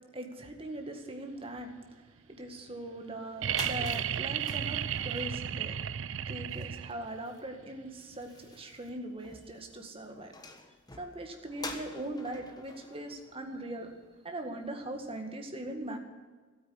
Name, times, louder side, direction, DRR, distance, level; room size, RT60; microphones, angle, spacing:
voice 1, 0.1-10.3 11.0-13.9 14.2-16.0, right 1 dB, 30° right, 4 dB, 1.9 m, -41 dB
sound 1, 3.1-3.2 3.4-14.1, left 3 dB, 20° left, 1.4 m, -48 dB
sound 2, 3.4-7.2 8.9-9.0, right 9 dB, 75° right, 0.5 m, -33 dB
13.0 x 9.1 x 9.7 m, 1.4 s
head